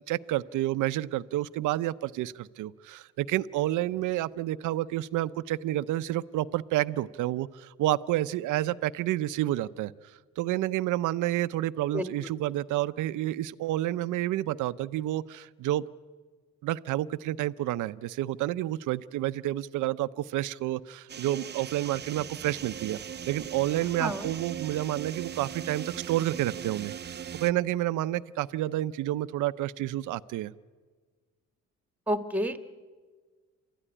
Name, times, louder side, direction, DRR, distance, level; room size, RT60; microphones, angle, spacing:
voice 1, 0.1-9.9 10.4-15.8 16.6-23.0 23.3-26.9 27.4-30.5, right 14 dB, 85° right, 14 dB, 0.6 m, -29 dB
sound 1, 21.1-27.5, right 8 dB, 35° right, 0.6 m, -39 dB
voice 2, 24.0-24.3 32.1-32.6, equal, 5° right, 8 dB, 1.7 m, -29 dB
28.5 x 13.0 x 9.9 m, 1.5 s
cardioid pair, 90°, 30 cm